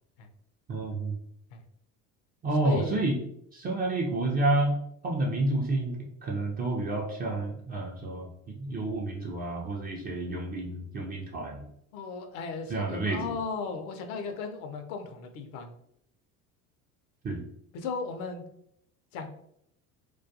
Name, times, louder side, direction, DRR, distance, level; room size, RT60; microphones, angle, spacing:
voice 1, 0.7-1.1 2.4-3.2 3.5-4.8 5.0-6.0 6.2-11.6 12.7-13.2 17.2-17.4, right 2 dB, 25° right, -1 dB, 0.3 m, -29 dB
voice 2, 2.6-3.0 11.9-15.7 17.7-18.4 19.1-19.4, left 4 dB, 65° left, 6 dB, 0.6 m, -36 dB
2.3 x 2.2 x 2.6 m, 0.74 s
hypercardioid pair, 75°, 45 cm